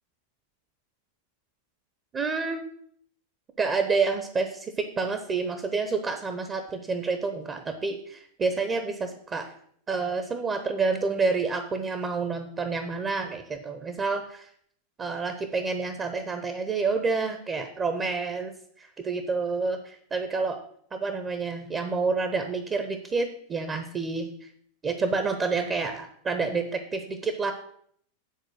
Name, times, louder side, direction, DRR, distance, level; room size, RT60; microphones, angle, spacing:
voice 1, 2.1-2.6 3.6-9.5 9.9-14.5 15.0-18.5 18.8-20.6 20.9-24.5 24.8-27.5, right 4 dB, 25° right, 7 dB, 0.9 m, -28 dB
9.3 x 4.4 x 6.2 m, 0.64 s
figure-of-eight pair, 90°, 0 cm